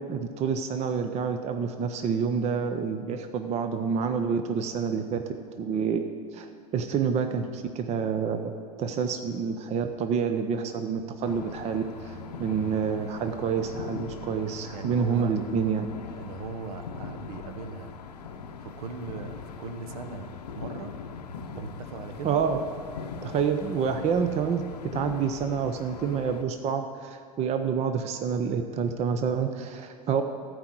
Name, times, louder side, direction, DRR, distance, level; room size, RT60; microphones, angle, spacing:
voice 1, 0.0-5.2 5.6-15.9 22.2-22.6 23.2-24.6 24.9-30.2, right 6 dB, 35° right, 7 dB, 0.7 m, -28 dB
sound 1, 11.2-26.4, left 5 dB, 80° left, 0.8 m, -41 dB
voice 2, 14.7-15.4 16.1-17.9 18.6-20.9 21.5-22.4, right 5 dB, 65° right, 8 dB, 1.0 m, -39 dB
13.5 x 4.8 x 7.6 m, 2.1 s
hypercardioid pair, 90°, 20 cm